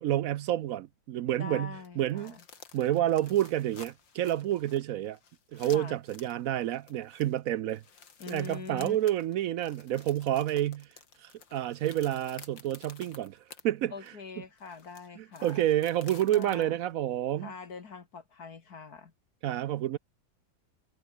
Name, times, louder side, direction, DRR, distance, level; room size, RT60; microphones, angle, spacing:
voice 1, 0.0-2.4 2.7-5.2 5.5-7.8 8.3-10.9 11.2-13.9 15.2-17.5 19.4-20.0, right 12 dB, 85° right, 0.7 m, -29 dB
voice 2, 1.4-2.4 5.7-6.0 8.2-9.0 13.9-15.6 16.3-16.7 17.4-19.1, left 5 dB, 50° left, 2.1 m, -43 dB
sound 1, 1.8-13.6 14.1-14.2 14.6-16.6, left 6 dB, 70° left, 3.0 m, -52 dB
omnidirectional pair, 2.1 m